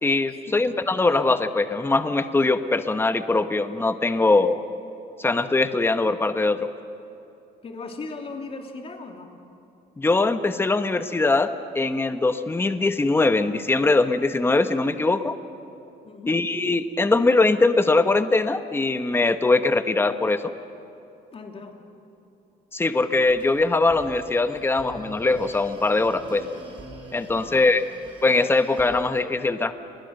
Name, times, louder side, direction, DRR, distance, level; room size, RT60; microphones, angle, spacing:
voice 1, 0.0-4.6 5.2-6.7 10.0-15.4 16.3-20.5 22.7-26.4 27.1-27.8 28.2-29.7, left 3 dB, 15° left, 9 dB, 1.0 m, -21 dB
voice 2, 7.6-9.4 16.0-16.4 21.3-21.8 27.3-27.9, left 3 dB, 35° left, 3 dB, 2.9 m, -38 dB
sound 1, 23.1-29.1, right 2 dB, 30° right, 6.0 m, -44 dB
30.0 x 21.0 x 6.6 m, 2.7 s
cardioid pair, 110°, 17 cm